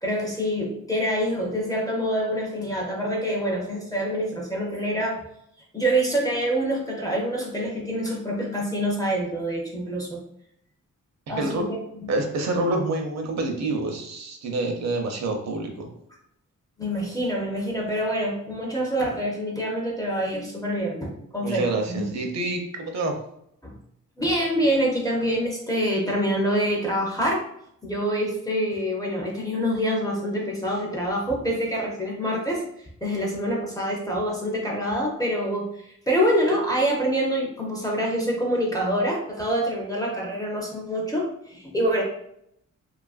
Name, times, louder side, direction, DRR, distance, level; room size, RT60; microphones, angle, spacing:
voice 1, 0.0-5.2 5.7-10.2 11.3-12.1 16.8-22.1 23.6-23.8 24.2-27.4 27.8-42.0, equal, 10° left, -3 dB, 0.4 m, -26 dB
voice 2, 12.1-15.9 21.4-23.2, right 2 dB, 60° right, 2 dB, 0.6 m, -27 dB
2.8 x 2.4 x 2.3 m, 0.74 s
wide cardioid pair, 170°, 31 cm